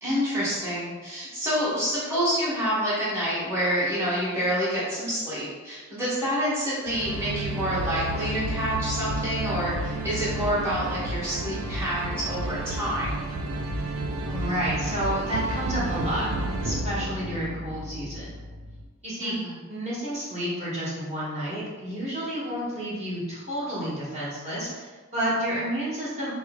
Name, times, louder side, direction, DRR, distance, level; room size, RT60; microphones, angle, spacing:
voice 1, 0.0-13.1 19.2-19.6, equal, 10° right, -11 dB, 1.2 m, -28 dB
sound 1, 6.9-18.8, right 1 dB, 75° right, 0.5 m, -31 dB
voice 2, 14.2-16.3 16.6-18.4 19.0-19.3 19.7-26.3, right 1 dB, 30° right, -8 dB, 1.3 m, -30 dB
4.1 x 3.0 x 3.6 m, 1.3 s
head